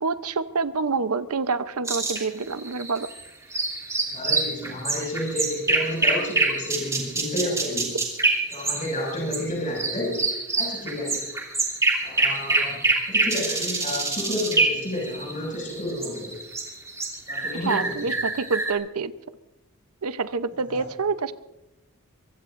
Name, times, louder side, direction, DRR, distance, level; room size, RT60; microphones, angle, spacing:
voice 1, 0.0-3.1 12.6-12.7 17.6-19.1 20.0-21.3, right 4 dB, 80° right, 12 dB, 0.8 m, -27 dB
sound 1, 1.8-9.4 9.7-18.7, right 3 dB, 15° right, 2.9 m, -26 dB
voice 2, 4.1-8.0 8.5-10.3 10.5-11.3 12.0-12.8 13.1-16.4 17.3-18.1 20.7-20.8, left 1 dB, 35° left, -3 dB, 6.1 m, -31 dB
23.5 x 23.5 x 2.6 m, 0.94 s
head